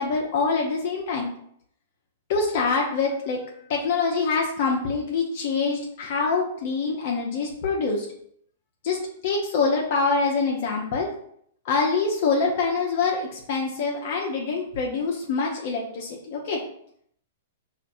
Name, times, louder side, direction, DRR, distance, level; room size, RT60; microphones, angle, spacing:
voice 1, 0.0-1.3 2.3-3.4 3.7-8.1 8.8-11.1 11.6-16.6, left 4 dB, 55° left, -1 dB, 0.7 m, -25 dB
5.2 x 2.5 x 2.6 m, 0.68 s
hypercardioid pair, 115°, 0 cm